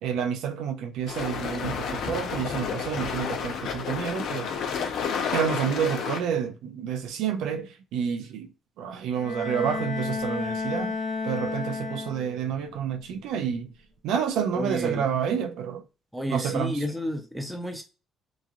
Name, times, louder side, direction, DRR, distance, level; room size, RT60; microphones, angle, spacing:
voice 1, 0.0-4.5 5.3-8.5 8.8-11.0 11.2-13.7 14.0-15.8 16.3-16.8, right 8 dB, 85° right, 0.4 m, -29 dB
sound 1, 1.1-6.2, left 6 dB, 70° left, 0.5 m, -30 dB
Bowed string instrument, 9.1-12.5, left 4 dB, 40° left, 0.8 m, -32 dB
voice 2, 14.5-15.1 16.1-17.8, equal, ahead, 0.6 m, -31 dB
2.9 x 2.4 x 2.4 m
cardioid pair, 105°, 0 cm